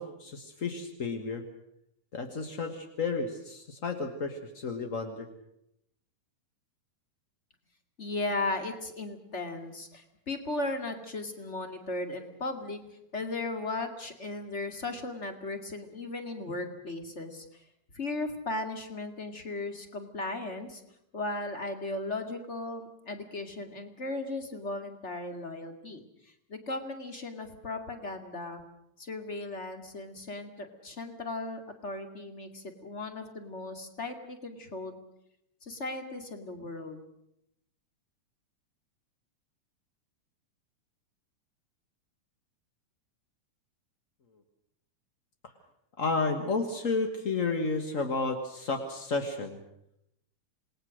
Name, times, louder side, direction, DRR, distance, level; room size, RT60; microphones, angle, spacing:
voice 1, 0.0-1.4 2.1-5.3 46.0-49.6, left 3 dB, 40° left, 5 dB, 1.1 m, -32 dB
voice 2, 8.0-12.8 13.1-17.6 17.9-20.8 21.1-28.6 29.0-35.0 35.6-37.0, left 2 dB, 25° left, 6 dB, 2.1 m, -36 dB
27.5 x 19.5 x 6.5 m, 0.79 s
omnidirectional pair, 3.6 m